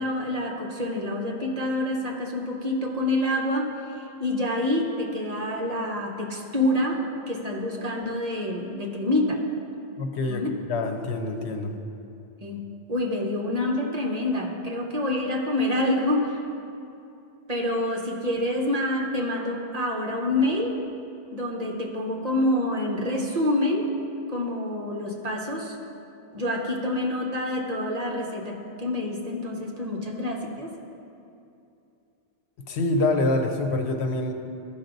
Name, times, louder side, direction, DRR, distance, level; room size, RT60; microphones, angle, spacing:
voice 1, 0.0-3.7 4.2-9.4 10.3-10.5 12.4-12.6 12.9-16.4 17.5-20.8 21.3-23.9 24.3-25.7 26.3-30.7, left 1 dB, 40° right, 0 dB, 1.0 m, -27 dB
voice 2, 10.0-10.4 10.7-11.7 32.7-34.3, left 2 dB, 85° left, 4 dB, 1.1 m, -25 dB
14.0 x 5.8 x 3.9 m, 2.6 s
omnidirectional pair, 1.1 m